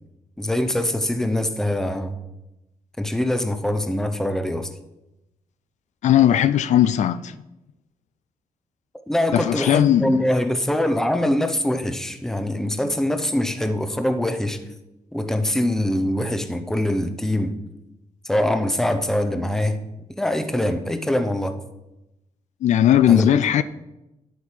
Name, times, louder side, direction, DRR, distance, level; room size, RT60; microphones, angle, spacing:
voice 1, 0.4-2.2 3.0-4.7 9.1-14.6 15.1-17.6 18.2-21.6 23.1-23.6, left 1 dB, 5° left, 0.7 m, -23 dB
voice 2, 6.0-7.4 9.3-10.2 22.6-23.6, left 11 dB, 65° left, 0.4 m, -18 dB
10.5 x 8.3 x 4.6 m
wide cardioid pair, 155°, 13 cm